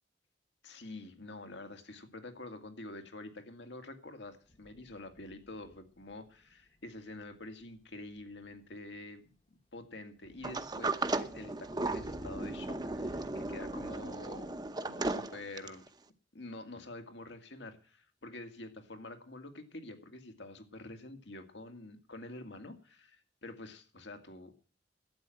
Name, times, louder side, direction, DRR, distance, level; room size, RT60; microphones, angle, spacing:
voice 1, 0.6-9.3 9.7-15.8 16.3-24.5, left 2 dB, 80° left, 6 dB, 2.1 m, -47 dB
sound 1, 4.4-6.5 7.3-7.4 8.2-8.6 10.2-14.7, left 1 dB, 30° left, 1.0 m, -52 dB
Sliding door, 10.4-15.9, right 2 dB, 25° right, 0.8 m, -36 dB
12.0 x 8.9 x 7.7 m, 0.40 s
head